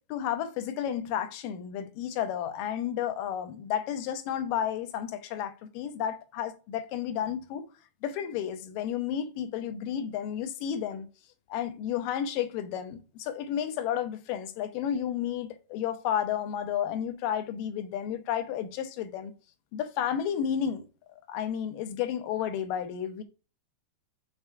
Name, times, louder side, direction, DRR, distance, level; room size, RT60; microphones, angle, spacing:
voice 1, 0.1-7.6 8.0-11.1 11.5-19.3 19.7-20.9 21.1-23.2, left 9 dB, 90° left, 2.5 m, -32 dB
7.1 x 3.5 x 4.4 m
omnidirectional pair, 3.8 m